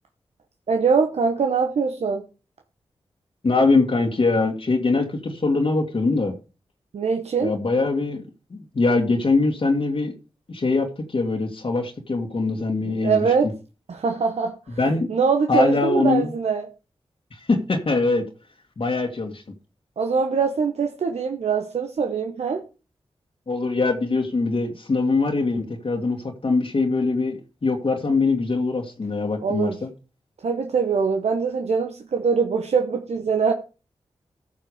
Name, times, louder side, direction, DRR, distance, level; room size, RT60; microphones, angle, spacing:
voice 1, 0.7-2.2 6.9-7.5 13.0-13.5 13.9-14.6 15.1-16.7 20.0-22.6 29.4-29.8 30.4-33.5, right 5 dB, 75° right, 1.0 m, -23 dB
voice 2, 3.4-6.4 7.4-8.2 8.5-10.1 10.5-13.3 14.8-15.1 15.5-16.3 17.3-18.3 18.8-19.4 23.5-29.9, left 3 dB, 55° left, 2.1 m, -22 dB
14.5 x 5.7 x 5.0 m
cardioid pair, 40°, 11 cm